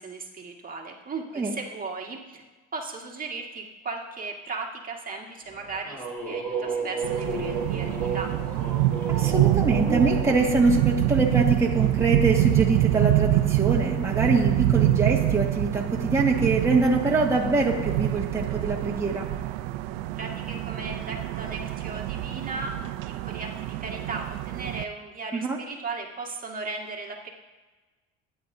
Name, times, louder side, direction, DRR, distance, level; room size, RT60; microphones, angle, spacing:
voice 1, 0.0-2.4 2.7-8.4 20.2-27.3, right 3 dB, 30° right, 0 dB, 1.9 m, -36 dB
sound 1, 5.5-10.4, right 4 dB, 5° left, 2.9 m, -32 dB
sound 2, 7.0-24.8, right 15 dB, 85° right, 0.6 m, -26 dB
voice 2, 9.1-19.3 25.3-25.6, right 3 dB, 10° right, -3 dB, 1.8 m, -24 dB
23.5 x 10.0 x 2.7 m, 1.3 s
supercardioid pair, 105°, 29 cm